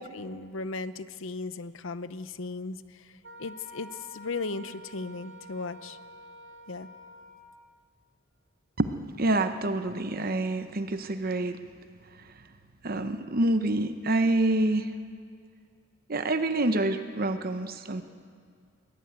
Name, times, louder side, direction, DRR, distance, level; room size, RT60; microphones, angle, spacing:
voice 1, 0.1-3.0 3.4-6.0 6.7-6.9, left 3 dB, 65° left, 14 dB, 0.8 m, -36 dB
Wind instrument woodwind instrument, 3.2-7.6, equal, 60° right, 2.6 m, -48 dB
voice 2, 8.8-11.6 12.8-14.9 16.1-18.0, right 2 dB, 45° right, 9 dB, 0.9 m, -27 dB
22.0 x 17.5 x 9.3 m, 2.2 s
head